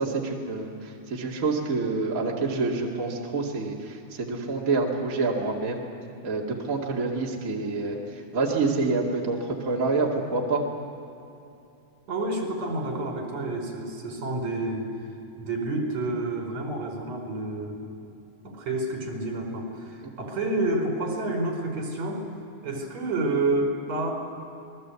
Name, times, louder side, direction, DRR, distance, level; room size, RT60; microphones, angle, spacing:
voice 1, 0.0-5.8 6.2-8.0 8.3-10.6, right 3 dB, 30° right, -2 dB, 2.5 m, -27 dB
voice 2, 12.1-14.9 15.4-17.9 18.4-22.3 22.6-24.1, right 2 dB, 65° right, 2 dB, 5.5 m, -29 dB
27.5 x 20.5 x 8.3 m, 2.7 s
omnidirectional pair, 3.5 m